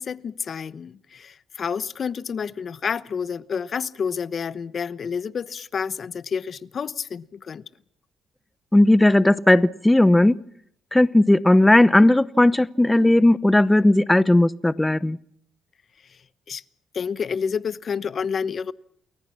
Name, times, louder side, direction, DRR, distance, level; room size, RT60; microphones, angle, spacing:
voice 1, 0.0-7.6 16.1-16.2 16.5-16.6 16.9-18.7, left 6 dB, 50° left, 1.0 m, -29 dB
voice 2, 8.7-10.4 10.9-15.2, left 1 dB, 10° left, 0.9 m, -16 dB
29.5 x 21.5 x 5.9 m
cardioid pair, 90°, 0 cm